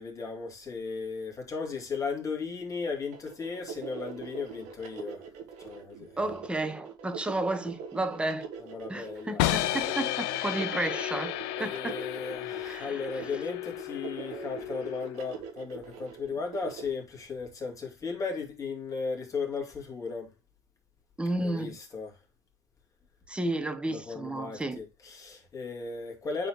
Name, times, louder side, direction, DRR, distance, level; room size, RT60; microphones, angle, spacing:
voice 1, 0.0-5.3 5.6-6.2 8.6-9.4 11.6-20.3 21.4-22.2 23.9-26.5, left 4 dB, 25° left, 2.7 m, -36 dB
sound 1, 3.1-16.8, right 7 dB, 60° right, 1.8 m, -43 dB
voice 2, 6.2-8.5 8.9-11.3 11.6-12.0 12.6-13.2 21.2-21.8 23.3-24.8, right 2 dB, 5° right, 1.0 m, -32 dB
sound 2, 9.4-15.4, left 16 dB, 70° left, 0.6 m, -33 dB
9.2 x 4.2 x 3.1 m
supercardioid pair, 110°, 14 cm